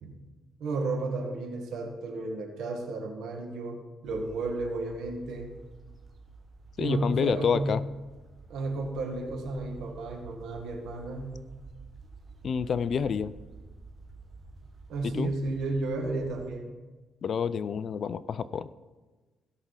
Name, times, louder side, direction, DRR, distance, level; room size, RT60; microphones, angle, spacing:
voice 1, 0.6-5.5 6.8-7.8 8.5-11.4 14.9-16.8, right 2 dB, 80° right, 2 dB, 1.8 m, -33 dB
sound 1, 4.0-16.5, right 4 dB, 35° right, 1.5 m, -50 dB
voice 2, 6.8-7.8 12.4-13.3 15.2-15.3 17.2-18.7, left 7 dB, 50° left, 16 dB, 0.4 m, -28 dB
16.0 x 6.1 x 4.1 m, 1.3 s
cardioid pair, 105°, 0 cm